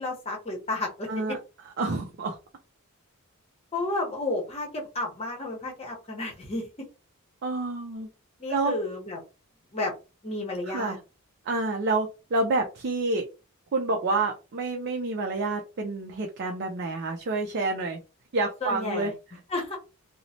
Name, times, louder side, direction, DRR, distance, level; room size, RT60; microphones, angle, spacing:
voice 1, 0.0-1.4 3.7-6.7 8.4-9.2 9.7-9.9 10.2-11.0 18.6-19.1 19.5-19.8, left 2 dB, 30° left, 0 dB, 0.8 m, -31 dB
voice 2, 1.1-1.4 1.8-2.4 7.4-8.1 8.5-8.7 10.7-11.0 11.5-13.2 13.7-18.0 18.3-19.1, right 3 dB, 50° right, 3 dB, 0.4 m, -28 dB
3.0 x 2.0 x 2.7 m, 0.30 s
head